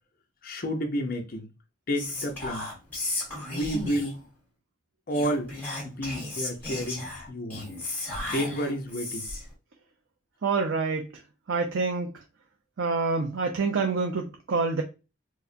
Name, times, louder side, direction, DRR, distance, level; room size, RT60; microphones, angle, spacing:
voice 1, 0.4-1.5 1.9-2.7 3.5-4.2 5.1-5.5 5.8-7.7 8.2-9.3, equal, 50° left, 0.7 m, -30 dB
Whispering, 1.9-4.3 5.1-9.5, left 2 dB, 10° left, 1.5 m, -35 dB
voice 2, 10.4-11.1 11.5-12.1 12.8-14.8, right 4 dB, 80° right, 0.5 m, -26 dB
4.5 x 2.1 x 2.6 m
head